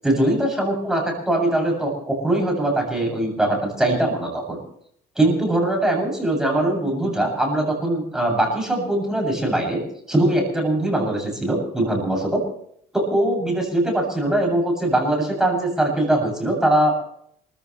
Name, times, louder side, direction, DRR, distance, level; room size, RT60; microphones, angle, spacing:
voice 1, 0.0-4.6 5.2-9.8 10.1-12.4 12.9-17.0, right 1 dB, 5° right, 0 dB, 7.8 m, -21 dB
28.0 x 15.0 x 3.3 m, 0.67 s
cardioid pair, 110°, 17 cm